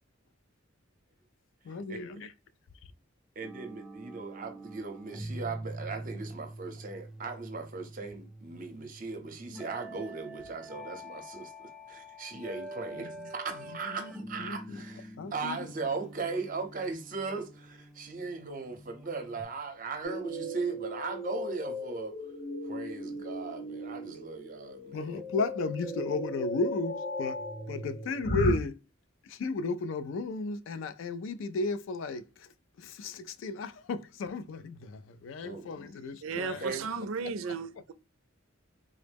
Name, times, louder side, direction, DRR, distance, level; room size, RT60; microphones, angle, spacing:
voice 1, 1.6-2.3 13.0-14.1 14.4-14.8 15.2-15.7 24.9-27.4 27.7-28.8 29.2-32.5 32.8-36.7 37.2-37.6, left 3 dB, 70° left, 0.3 m, -34 dB
sound 1, 3.4-19.4, right 1 dB, 5° right, 0.4 m, -45 dB
voice 2, 3.4-22.1 22.6-25.2 35.4-35.7 36.6-36.9, right 4 dB, 40° right, 0.6 m, -38 dB
sound 2, 20.0-28.5, equal, 45° left, 0.7 m, -36 dB
voice 3, 36.2-37.9, right 5 dB, 80° right, 0.4 m, -35 dB
3.7 x 2.0 x 3.3 m
head